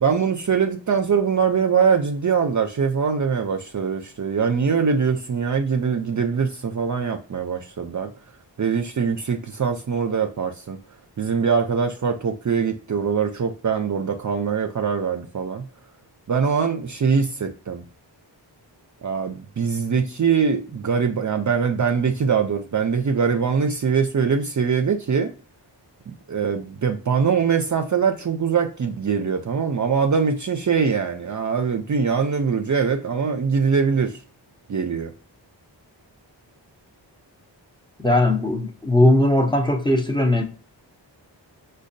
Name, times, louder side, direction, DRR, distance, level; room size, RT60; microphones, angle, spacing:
voice 1, 0.0-8.1 8.6-10.8 11.2-15.7 16.3-17.8 19.0-25.3 26.1-34.2 34.7-35.1, right 6 dB, 45° right, 0.4 m, -22 dB
voice 2, 38.0-40.4, left 1 dB, 10° left, 0.6 m, -19 dB
5.0 x 2.2 x 2.5 m
wide cardioid pair, 60°, 44 cm